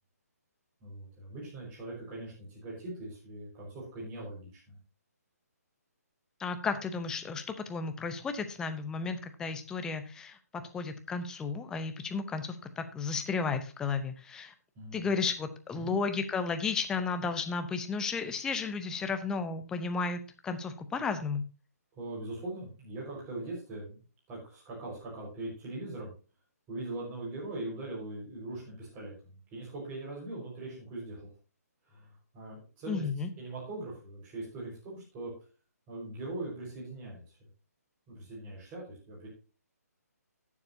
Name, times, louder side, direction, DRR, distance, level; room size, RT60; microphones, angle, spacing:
voice 1, 0.8-4.8 14.7-15.1 15.7-16.0 22.0-24.0 24.3-26.1 26.7-31.3 31.9-33.1 33.4-35.3 35.9-37.2 38.1-39.3, right 2 dB, 20° right, -5 dB, 4.8 m, -41 dB
voice 2, 6.4-7.4 7.7-10.4 10.7-14.5 14.9-21.4 32.9-33.3, left 4 dB, 5° left, 9 dB, 0.7 m, -33 dB
18.0 x 7.2 x 2.7 m, 0.34 s
hypercardioid pair, 160°, 9 cm